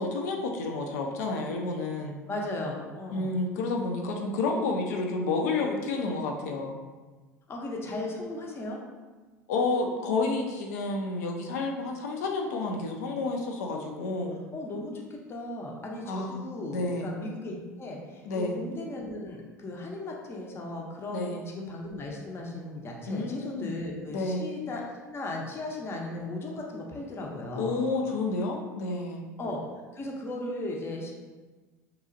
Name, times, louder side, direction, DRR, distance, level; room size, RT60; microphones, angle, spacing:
voice 1, 0.0-2.2 3.1-6.8 9.5-14.4 16.1-16.5 16.7-17.1 18.3-18.6 21.1-21.5 23.1-23.7 24.1-24.5 27.6-29.2, left 3 dB, 70° left, 1 dB, 0.4 m, -30 dB
voice 2, 2.3-3.3 7.5-8.8 14.5-21.3 21.6-24.8 25.1-27.8 29.4-29.6 29.9-31.1, left 2 dB, 25° left, -1 dB, 0.6 m, -36 dB
2.9 x 2.3 x 2.5 m, 1.3 s
hypercardioid pair, 80°, 9 cm